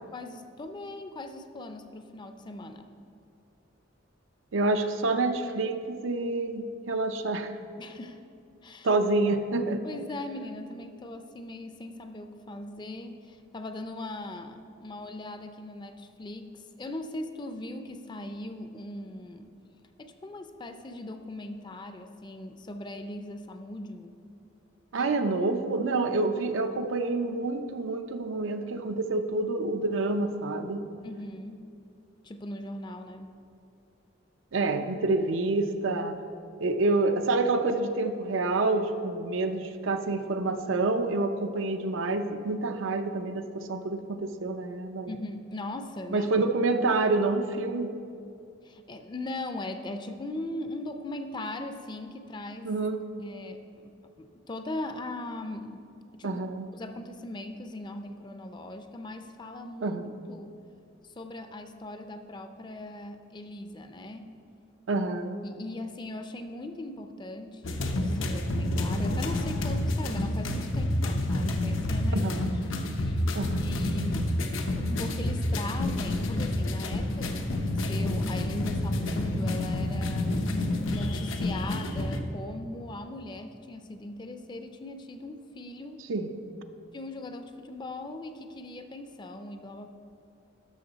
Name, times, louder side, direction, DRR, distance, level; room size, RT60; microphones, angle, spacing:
voice 1, 0.1-2.9 7.8-8.2 8.6-8.9 9.8-16.5 16.8-19.5 20.0-24.1 24.9-25.1 31.0-31.7 32.2-33.3 45.1-46.3 48.6-52.7 53.2-53.9 54.2-55.8 56.1-56.4 56.7-60.0 60.3-60.5 61.2-64.3 65.4-72.3 72.9-73.2 73.6-74.3 74.9-80.5 80.9-86.0 86.9-89.9, left 1 dB, 25° left, 7 dB, 0.4 m, -39 dB
voice 2, 4.5-7.5 8.8-9.8 24.9-30.8 34.5-36.2 36.6-45.1 46.1-47.9 52.6-53.1 56.2-56.7 59.8-60.1 64.9-65.4 72.1-72.5 73.3-73.7 86.1-86.3, right 3 dB, 80° right, 7 dB, 0.5 m, -28 dB
sound 1, 67.6-82.2, left 1 dB, 85° left, 0.7 m, -29 dB
12.5 x 6.0 x 4.0 m, 2.5 s
head